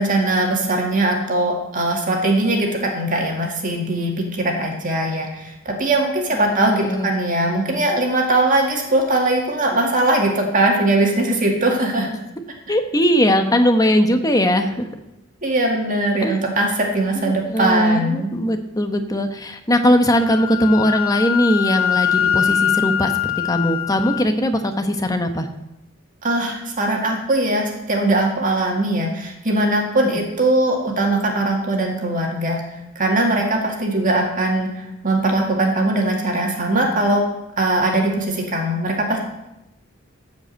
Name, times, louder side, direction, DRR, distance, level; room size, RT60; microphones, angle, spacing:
voice 1, 0.0-12.1 15.4-18.3 26.2-32.6 33.0-37.2 37.6-39.2, right 2 dB, 40° right, 0 dB, 2.0 m, -20 dB
voice 2, 6.3-7.1 12.7-14.9 16.2-16.4 17.2-25.5 30.0-30.2, equal, 15° left, 6 dB, 1.0 m, -19 dB
Wind instrument woodwind instrument, 20.1-24.2, left 9 dB, 75° left, 0.6 m, -22 dB
13.5 x 5.2 x 7.8 m, 0.90 s
head